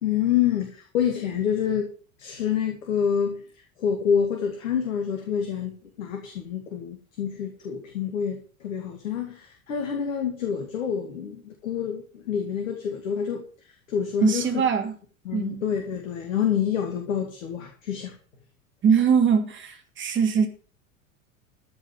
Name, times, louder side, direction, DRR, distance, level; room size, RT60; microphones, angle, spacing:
voice 1, 0.0-1.9 2.2-3.4 3.8-13.4 13.9-14.5 15.2-18.1, left 8 dB, 65° left, 2.5 m, -27 dB
voice 2, 14.2-15.0 15.3-15.6 18.8-20.5, right 6 dB, 30° right, 2.7 m, -22 dB
14.5 x 5.3 x 7.8 m
figure-of-eight pair, 85°, 41 cm